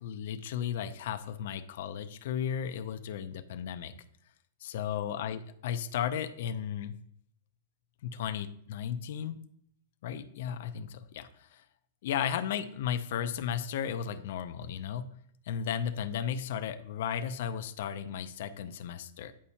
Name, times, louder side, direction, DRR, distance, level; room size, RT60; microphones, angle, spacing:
voice 1, 0.0-3.9 4.6-6.9 8.0-9.4 10.0-11.6 12.0-15.1 15.5-19.3, left 8 dB, 55° left, 10 dB, 0.5 m, -35 dB
8.5 x 5.3 x 2.8 m, 0.67 s
supercardioid pair, 170°, 0 cm